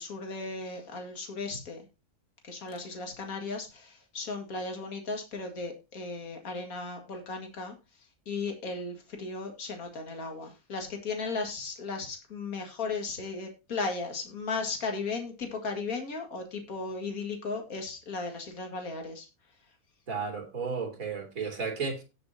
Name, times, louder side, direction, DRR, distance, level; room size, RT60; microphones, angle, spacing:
voice 1, 0.0-1.8 2.4-7.8 8.3-19.3, left 3 dB, 65° left, 4 dB, 2.6 m, -36 dB
voice 2, 20.1-22.0, right 5 dB, 65° right, 3 dB, 3.2 m, -33 dB
17.5 x 6.8 x 2.8 m, 0.27 s
omnidirectional pair, 1.6 m